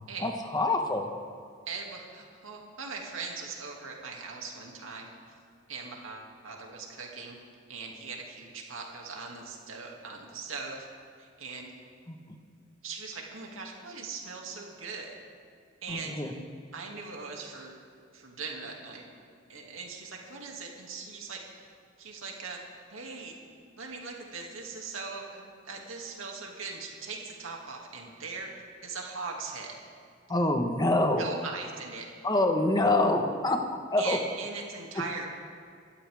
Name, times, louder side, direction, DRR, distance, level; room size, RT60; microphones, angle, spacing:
voice 1, 0.2-1.1 12.1-12.4 15.9-16.3 30.3-31.2 32.2-34.2, left 2 dB, 20° left, 4 dB, 1.2 m, -26 dB
voice 2, 1.7-5.1 5.7-7.4 7.7-10.9 11.2-11.7 12.8-15.1 15.8-16.2 16.7-17.7 18.1-19.0 19.5-21.4 22.0-22.6 22.9-23.3 23.8-28.5 28.8-29.7 31.2-32.0 34.0-35.3, right 4 dB, 80° right, 0 dB, 2.4 m, -40 dB
25.5 x 12.5 x 3.6 m, 2.2 s
head